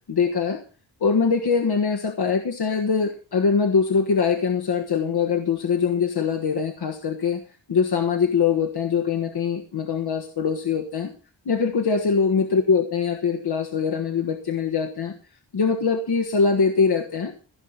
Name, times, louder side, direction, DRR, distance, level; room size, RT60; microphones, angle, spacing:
voice 1, 0.1-0.6 1.0-7.4 7.7-11.1 11.4-15.1 15.5-17.3, left 5 dB, 55° left, 3 dB, 1.5 m, -22 dB
16.0 x 5.6 x 8.0 m, 0.38 s
wide cardioid pair, 95°, 46 cm